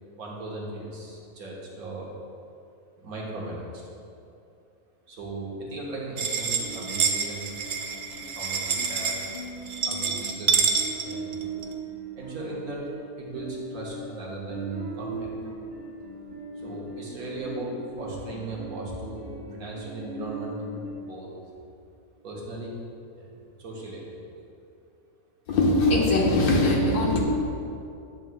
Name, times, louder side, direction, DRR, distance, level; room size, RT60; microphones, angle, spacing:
voice 1, 0.1-2.1 3.0-3.8 5.1-7.5 7.8-7.9 8.4-9.2 9.9-11.4 12.1-12.8 13.2-15.3 16.6-20.6 21.0-21.3 22.2-22.8 23.2-24.1, right 2 dB, 80° right, -4 dB, 1.7 m, -37 dB
sound 1, 6.2-11.7, right 6 dB, 60° right, 0.6 m, -27 dB
sound 2, 6.6-20.9, right 3 dB, 40° right, 1.5 m, -40 dB
voice 2, 25.5-27.2, left 2 dB, 85° left, -2 dB, 1.6 m, -21 dB
9.2 x 6.8 x 2.2 m, 2.6 s
omnidirectional pair, 1.5 m